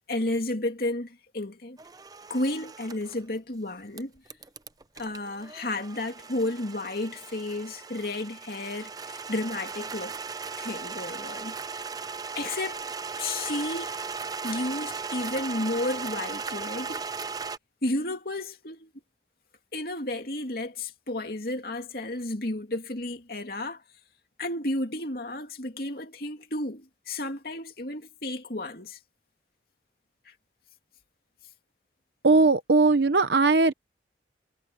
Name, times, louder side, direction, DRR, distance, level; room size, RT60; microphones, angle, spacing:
voice 1, 0.1-1.8 2.3-4.1 5.0-10.1 10.6-11.6 12.3-12.9 13.2-13.9 14.4-17.0 17.8-18.9 19.7-23.8 24.4-29.0 30.3-30.4, left 1 dB, 55° left, 2.8 m, -32 dB
sound 1, 1.8-3.2 4.0-17.6, right 5 dB, 20° right, 0.6 m, -37 dB
voice 2, 32.2-33.7, right 3 dB, 70° right, 0.8 m, -19 dB
head